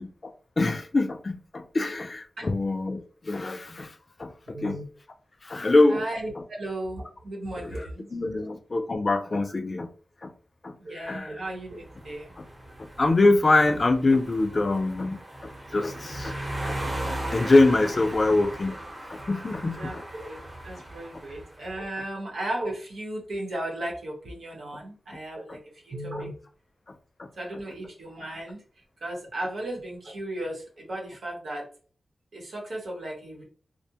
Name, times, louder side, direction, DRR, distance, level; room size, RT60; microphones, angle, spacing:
voice 1, 0.0-3.9 4.2-4.8 5.4-6.0 7.6-9.9 10.2-10.3 10.6-11.3 12.4-12.5 12.8-16.4 16.7-16.8 17.3-18.8 19.1-20.0 27.2-27.3, left 2 dB, 40° left, 0.3 m, -24 dB
voice 2, 4.5-4.9 5.9-8.5 10.8-12.3 15.9-16.1 19.6-20.4 20.6-25.6 25.8-26.3 27.4-28.6 29.0-31.7 32.3-33.4, right 1 dB, 80° right, 1.0 m, -35 dB
sound 1, 11.5-21.8, right 1 dB, 25° right, 0.8 m, -37 dB
2.4 x 2.1 x 2.7 m
wide cardioid pair, 110°, 0 cm